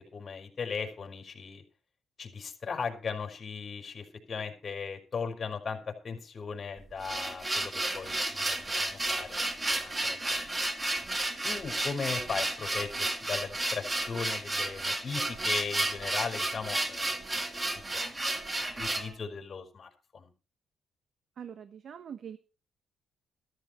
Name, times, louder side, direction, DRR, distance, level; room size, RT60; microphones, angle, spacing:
voice 1, 0.0-1.6 2.2-10.6 11.4-18.1 18.7-20.3, left 5 dB, 40° left, 4 dB, 4.8 m, -38 dB
sound 1, 6.8-19.1, right 2 dB, 20° right, 1.8 m, -32 dB
voice 2, 21.4-22.4, right 8 dB, 60° right, 11 dB, 1.2 m, -43 dB
13.5 x 13.5 x 4.5 m, 0.34 s
cardioid pair, 90°, 0 cm